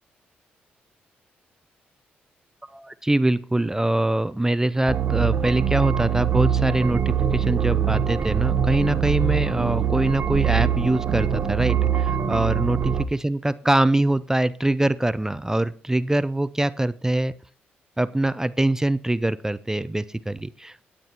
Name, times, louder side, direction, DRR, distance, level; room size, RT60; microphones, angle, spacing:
voice 1, 2.7-17.3 18.0-20.9, right 1 dB, 10° right, 16 dB, 0.4 m, -23 dB
sound 1, 4.9-13.1, right 8 dB, 50° right, 0.8 m, -23 dB
21.0 x 7.4 x 2.9 m, 0.42 s
hypercardioid pair, 45°, 5 cm